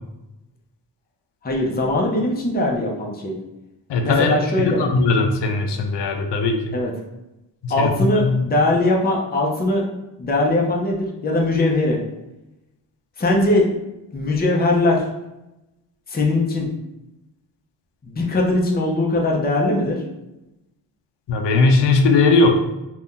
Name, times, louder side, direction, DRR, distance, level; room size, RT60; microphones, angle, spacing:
voice 1, 1.4-3.4 4.0-4.8 6.7-6.9 7.7-9.9 10.2-12.0 13.2-13.8 14.1-15.0 16.1-16.7 18.0-20.0, left 2 dB, 20° left, -1 dB, 0.6 m, -20 dB
voice 2, 3.9-6.8 7.6-8.4 21.3-22.6, left 3 dB, 70° left, 4 dB, 0.6 m, -19 dB
2.6 x 2.3 x 3.6 m, 0.93 s
cardioid pair, 70°, 44 cm